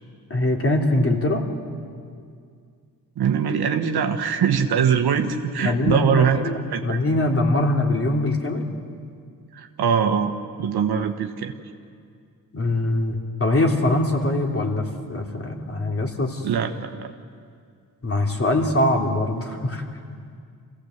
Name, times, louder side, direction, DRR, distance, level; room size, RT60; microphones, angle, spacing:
voice 1, 0.3-1.4 5.6-8.6 12.5-16.4 18.0-19.8, left 1 dB, 35° left, 1 dB, 3.3 m, -22 dB
voice 2, 3.2-6.4 6.7-7.0 9.5-10.3 10.6-11.6 16.4-17.1, right 7 dB, 85° right, 5 dB, 1.3 m, -22 dB
25.5 x 16.5 x 8.0 m, 2.2 s
cardioid pair, 70°, 37 cm